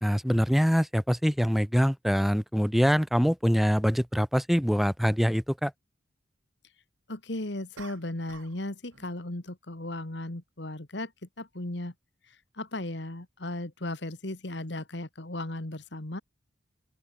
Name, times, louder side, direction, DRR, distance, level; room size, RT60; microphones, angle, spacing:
voice 1, 0.0-5.7, equal, ahead, 2.0 m, -24 dB
voice 2, 7.1-11.1 11.4-11.9 12.6-16.2, left 1 dB, 60° left, 1.9 m, -36 dB
sound 1, 7.8-8.6 8.9-9.2, right 4 dB, 90° right, 5.1 m, -49 dB
open air
head